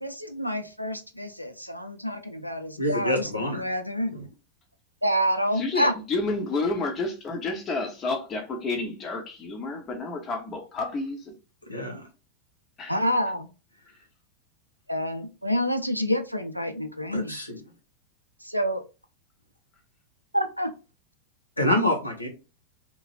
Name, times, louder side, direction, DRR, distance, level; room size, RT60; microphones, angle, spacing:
voice 1, 0.0-4.3 5.0-5.9 12.9-13.5 14.9-17.4 18.4-18.8 20.3-20.7, equal, 90° right, 0.4 m, -28 dB
voice 2, 2.8-3.6 11.6-12.0 17.1-17.5 21.6-22.3, left 1 dB, 85° left, 0.8 m, -26 dB
voice 3, 5.6-11.3 12.8-13.0, left 3 dB, 25° left, 0.9 m, -30 dB
2.9 x 2.3 x 3.1 m
figure-of-eight pair, 90°, 0 cm